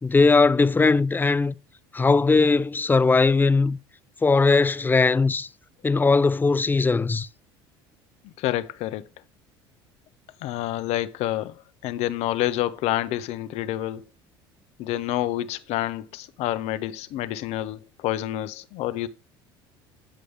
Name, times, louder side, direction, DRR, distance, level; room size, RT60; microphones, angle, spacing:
voice 1, 0.0-1.5 1.9-3.8 4.2-5.5 5.8-7.3, left 4 dB, 15° left, 0.5 m, -19 dB
voice 2, 8.2-9.1 10.4-11.6 11.8-14.0 14.8-19.1, left 14 dB, 60° left, 0.9 m, -28 dB
10.0 x 7.7 x 3.4 m
hypercardioid pair, 70°, 13 cm